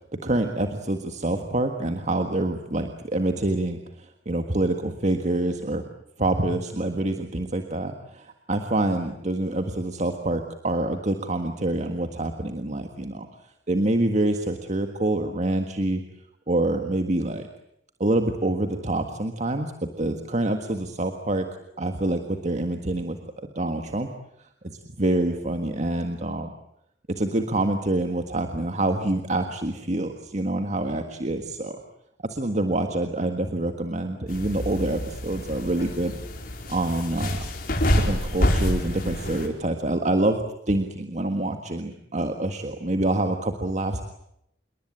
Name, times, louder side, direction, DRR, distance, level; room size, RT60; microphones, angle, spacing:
voice 1, 0.2-5.8 6.2-13.3 13.7-16.0 16.5-17.5 18.0-21.5 21.8-24.1 24.6-26.5 27.1-31.8 32.2-36.1 36.7-37.5 37.9-44.0, right 1 dB, 40° right, 6 dB, 1.7 m, -26 dB
sound 1, 34.3-39.5, left 1 dB, 55° left, 4.7 m, -27 dB
28.0 x 22.5 x 8.8 m, 0.77 s
head